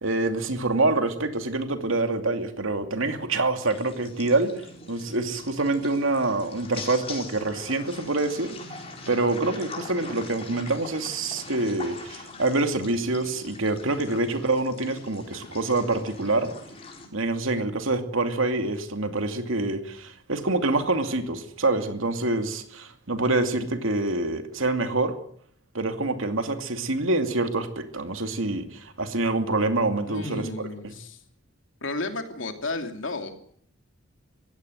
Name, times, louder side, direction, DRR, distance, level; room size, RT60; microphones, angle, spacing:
voice 1, 0.0-4.5 4.9-8.6 9.1-16.5 17.1-25.1 25.7-30.4 30.8-30.9, right 2 dB, 85° right, 7 dB, 2.5 m, -26 dB
sound 1, 3.6-17.1, left 3 dB, 30° left, 4.6 m, -42 dB
voice 2, 30.0-31.2 31.8-33.3, left 2 dB, 75° left, 5 dB, 2.9 m, -33 dB
22.0 x 16.0 x 7.9 m, 0.64 s
head